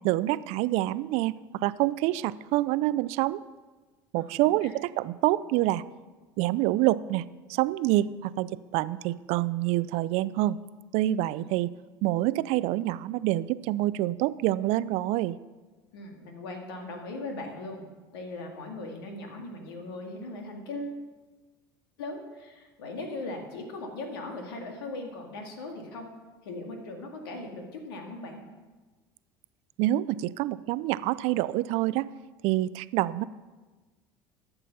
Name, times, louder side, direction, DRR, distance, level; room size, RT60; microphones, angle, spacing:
voice 1, 0.0-3.4 4.1-5.8 6.4-7.2 7.5-10.6 10.9-11.7 12.0-15.4 29.8-32.1 32.4-33.2, right 16 dB, 60° right, 18 dB, 0.4 m, -26 dB
voice 2, 4.2-4.7 7.9-8.0 11.4-11.5 15.9-17.9 18.1-21.0 22.0-26.1 26.4-28.4, left 2 dB, 80° left, 3 dB, 2.0 m, -39 dB
12.5 x 6.9 x 5.7 m, 1.3 s
hypercardioid pair, 70°, 12 cm